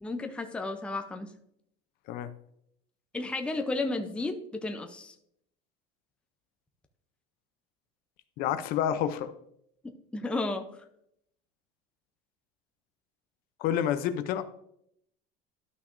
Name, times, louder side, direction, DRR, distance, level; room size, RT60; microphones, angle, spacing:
voice 1, 0.0-1.3 3.1-5.1 10.1-10.7, left 2 dB, 5° left, 5 dB, 0.5 m, -33 dB
voice 2, 8.4-9.3 13.6-14.4, left 10 dB, 50° left, 11 dB, 0.6 m, -28 dB
12.5 x 5.8 x 2.6 m, 0.74 s
cardioid pair, 150°, 19 cm